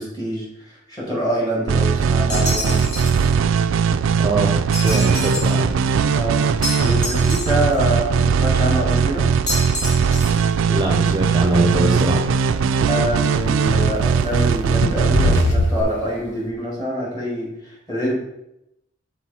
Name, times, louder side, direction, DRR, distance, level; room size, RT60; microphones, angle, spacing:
voice 1, 0.0-2.9 6.1-9.3 12.8-18.2, equal, 20° left, -4 dB, 2.1 m, -25 dB
sound 1, 1.7-15.8, right 6 dB, 85° right, 0.3 m, -19 dB
sound 2, 2.3-3.3 4.7-5.6 6.6-7.8 9.5-10.5, left 2 dB, 40° left, 2.0 m, -28 dB
voice 2, 4.2-5.7 10.7-12.2, right 2 dB, 25° right, 1 dB, 0.5 m, -22 dB
sound 3, 9.3-9.4 11.6-11.7 13.4-13.5 14.7-16.5, left 1 dB, 60° left, 0.7 m, -20 dB
6.1 x 4.1 x 4.2 m, 0.85 s
head